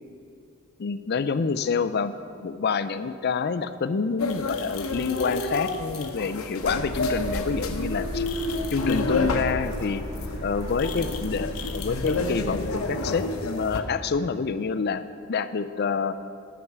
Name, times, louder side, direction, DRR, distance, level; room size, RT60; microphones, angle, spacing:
voice 1, 0.8-2.1 2.4-8.3 8.7-10.0 10.4-15.0 15.3-16.2, left 5 dB, 50° left, 12 dB, 0.4 m, -27 dB
sound 1, 4.2-13.8, left 2 dB, 85° left, 0.9 m, -30 dB
sound 2, 6.6-12.8, left 1 dB, 25° right, 3.0 m, -35 dB
12.0 x 6.0 x 7.4 m, 2.6 s
head